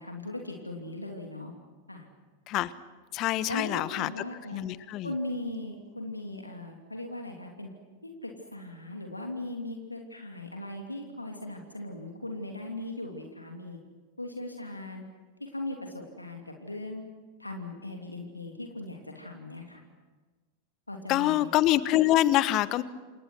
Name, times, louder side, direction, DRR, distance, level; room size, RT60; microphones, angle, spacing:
voice 1, 0.0-1.5 1.9-2.1 3.5-4.6 5.0-7.7 8.0-13.8 14.2-15.0 15.4-17.0 17.4-19.8 20.9-21.5, left 1 dB, 85° left, 2 dB, 3.0 m, -38 dB
voice 2, 3.1-4.1 4.5-5.1 21.1-22.8, left 14 dB, 35° left, 16 dB, 1.2 m, -25 dB
28.5 x 27.5 x 6.2 m, 1.3 s
figure-of-eight pair, 90°, 0 cm